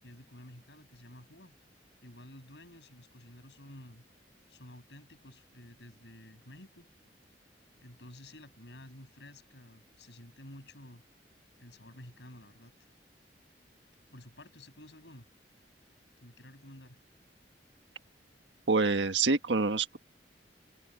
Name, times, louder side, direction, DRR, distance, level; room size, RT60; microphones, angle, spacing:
voice 1, 0.0-1.5 2.0-4.0 4.5-7.2 7.8-11.0 11.6-12.7 14.0-15.3 16.2-17.0, left 1 dB, 75° left, 7.4 m, -52 dB
voice 2, 18.7-20.0, right 4 dB, 85° right, 1.5 m, -26 dB
open air
head